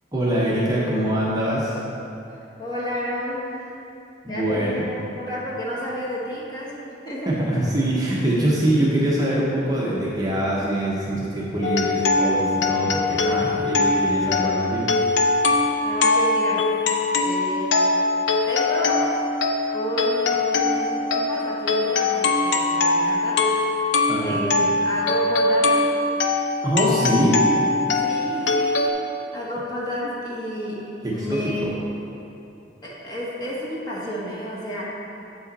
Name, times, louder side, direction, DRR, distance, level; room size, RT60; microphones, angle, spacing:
voice 1, 0.1-1.8 4.2-4.8 7.3-14.8 24.1-24.4 26.6-27.4 31.0-31.7, right 1 dB, 20° right, -6 dB, 0.9 m, -23 dB
voice 2, 2.6-3.8 4.3-7.7 15.8-16.8 17.2-17.8 18.5-19.2 19.7-23.9 24.2-25.9 27.9-28.9 29.3-31.8 32.8-34.9, equal, 20° left, -6 dB, 1.1 m, -31 dB
sound 1, 11.6-28.9, left 3 dB, 70° left, 0.5 m, -22 dB
7.4 x 5.6 x 4.1 m, 2.8 s
head